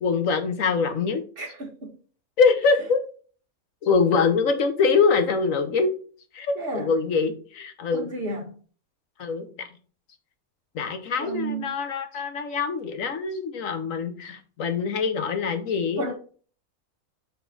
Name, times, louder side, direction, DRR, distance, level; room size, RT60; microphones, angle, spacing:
voice 1, 0.0-1.2 2.4-3.0 3.8-5.9 6.3-8.1 9.2-9.7 10.7-16.0, left 5 dB, 70° left, 1.4 m, -24 dB
voice 2, 1.4-1.9 4.1-4.2 6.5-6.9 7.9-8.6 11.2-11.7 16.0-16.1, right 2 dB, 45° right, 1.3 m, -32 dB
6.8 x 4.3 x 4.0 m
omnidirectional pair, 1.5 m